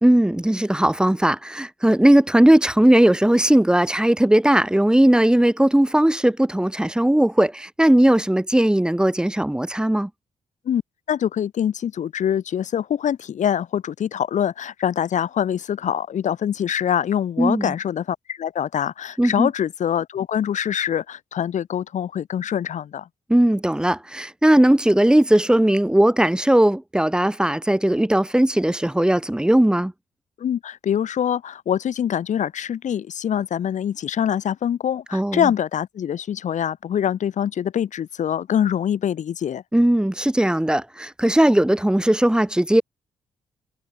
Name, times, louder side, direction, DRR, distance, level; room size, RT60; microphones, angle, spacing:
voice 1, 0.0-10.1 17.4-17.7 19.2-19.5 23.3-29.9 35.1-35.5 39.7-42.8, right 1 dB, 5° right, 0.7 m, -18 dB
voice 2, 11.1-23.1 30.4-39.6, left 9 dB, 60° left, 1.5 m, -24 dB
hypercardioid pair, 45°, 14 cm